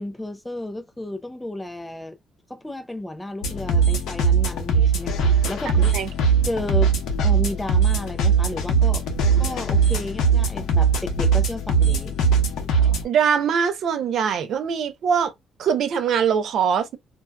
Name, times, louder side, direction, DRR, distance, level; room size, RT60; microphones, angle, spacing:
voice 1, 0.0-2.2 2.5-5.9 6.4-9.1 9.4-12.2, left 1 dB, 5° left, 0.4 m, -32 dB
sound 1, 3.4-13.0, right 5 dB, 90° left, 0.7 m, -20 dB
voice 2, 13.0-15.3 15.6-17.0, right 7 dB, 60° right, 0.5 m, -22 dB
2.6 x 2.2 x 2.2 m
cardioid pair, 140°, 0 cm